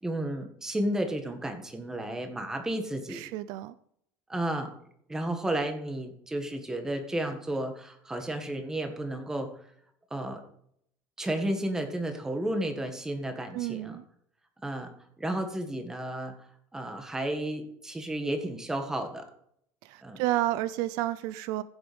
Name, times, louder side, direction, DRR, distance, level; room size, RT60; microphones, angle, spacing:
voice 1, 0.0-3.2 4.3-4.7 5.1-9.5 10.1-10.4 11.2-14.0 14.6-14.9 15.2-16.3 16.7-19.3 20.0-20.2, right 1 dB, 10° right, 6 dB, 1.8 m, -32 dB
voice 2, 3.1-3.7 13.5-14.0 19.8-21.6, right 15 dB, 70° right, 16 dB, 0.6 m, -31 dB
16.0 x 7.2 x 5.3 m, 0.68 s
cardioid pair, 160°, 7 cm